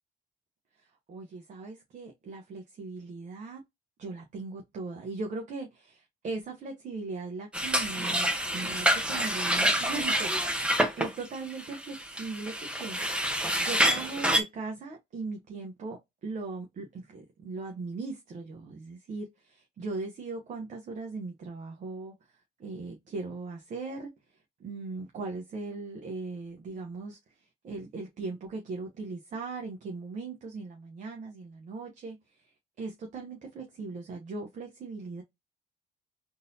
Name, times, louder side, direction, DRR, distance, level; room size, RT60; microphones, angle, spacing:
voice 1, 0.8-3.6 4.0-13.3 13.6-22.3 22.6-35.2, right 3 dB, 45° right, 0.9 m, -39 dB
sound 1, 7.5-14.4, equal, 5° right, 0.7 m, -27 dB
3.9 x 2.6 x 2.7 m
cardioid pair, 110°, 17 cm